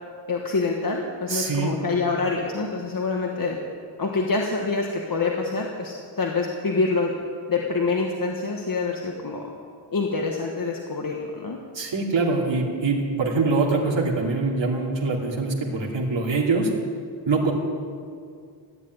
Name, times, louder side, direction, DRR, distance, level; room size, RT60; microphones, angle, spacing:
voice 1, 0.3-3.6 4.0-7.1 7.5-9.5 9.9-11.6, left 3 dB, 50° left, 0 dB, 1.4 m, -26 dB
voice 2, 1.3-1.7 11.7-16.7 17.3-17.5, right 3 dB, 70° right, -2 dB, 2.7 m, -24 dB
15.0 x 10.0 x 9.3 m, 2.2 s
wide cardioid pair, 135°, 45 cm